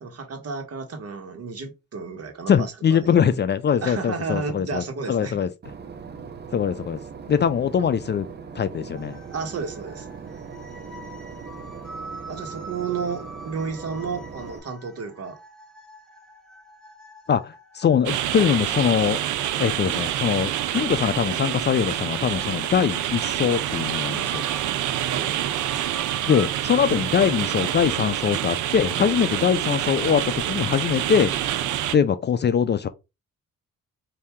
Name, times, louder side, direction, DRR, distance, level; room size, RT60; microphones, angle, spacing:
voice 1, 0.0-3.1 3.8-5.4 9.3-10.1 12.3-15.4 25.1-25.3, right 5 dB, 50° right, 1.4 m, -32 dB
voice 2, 2.5-5.5 6.5-7.0 7.3-8.3 8.6-9.2 17.3-19.2 19.6-24.5 26.3-31.5 31.9-32.9, left 7 dB, 35° left, 0.4 m, -22 dB
Boat Water vehicle / Engine, 5.6-14.6, right 6 dB, 35° right, 0.8 m, -40 dB
sound 1, 8.9-26.5, right 2 dB, ahead, 1.3 m, -45 dB
sound 2, 18.1-32.0, right 12 dB, 75° right, 0.6 m, -27 dB
4.2 x 2.8 x 3.6 m
cardioid pair, 90°, 30 cm